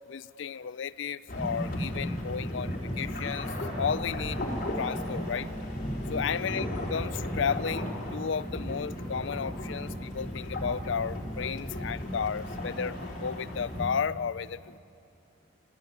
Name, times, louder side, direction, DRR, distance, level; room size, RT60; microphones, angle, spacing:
voice 1, 0.1-4.4 4.8-5.5 6.1-14.8, left 6 dB, 65° left, 18 dB, 0.4 m, -33 dB
sound 1, 1.3-13.9, equal, 45° left, 4.0 m, -35 dB
25.5 x 14.5 x 9.5 m, 2.7 s
head